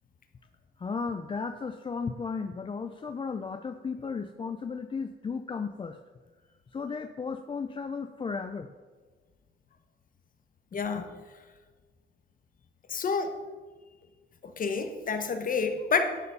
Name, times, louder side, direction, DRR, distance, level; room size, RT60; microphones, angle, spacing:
voice 1, 0.8-6.0 6.7-8.7, left 5 dB, 25° left, 8 dB, 0.4 m, -35 dB
voice 2, 10.7-11.1 12.9-13.3 14.4-16.2, left 5 dB, 45° left, 8 dB, 1.0 m, -29 dB
11.0 x 4.2 x 5.4 m, 1.4 s
cardioid pair, 90°, 20 cm